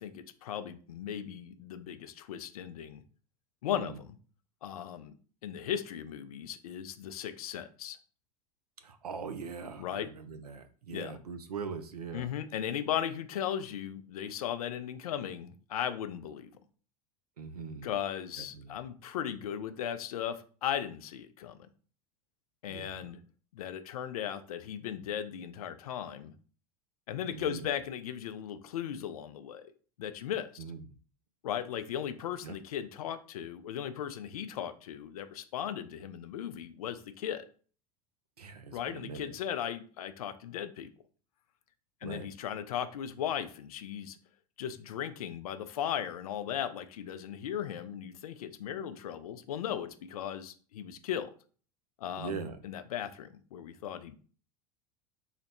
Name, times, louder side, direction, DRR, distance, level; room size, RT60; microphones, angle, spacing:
voice 1, 0.0-3.0 3.6-4.2 4.6-5.1 5.4-8.0 9.8-10.1 10.9-11.2 12.1-16.5 17.8-21.7 22.6-23.2 23.5-26.3 27.1-29.7 30.0-30.6 31.4-37.5 38.7-40.9 42.0-44.2 44.6-51.3 52.0-54.2, left 9 dB, 70° left, 11 dB, 0.5 m, -37 dB
voice 2, 8.8-12.3 17.4-17.9 18.4-18.8 22.7-23.0 27.3-27.7 30.6-30.8 32.4-32.6 38.4-39.3 42.0-42.3 52.2-52.6, right 5 dB, 85° right, 9 dB, 0.5 m, -41 dB
4.0 x 2.0 x 4.2 m, 0.41 s
figure-of-eight pair, 80°, 19 cm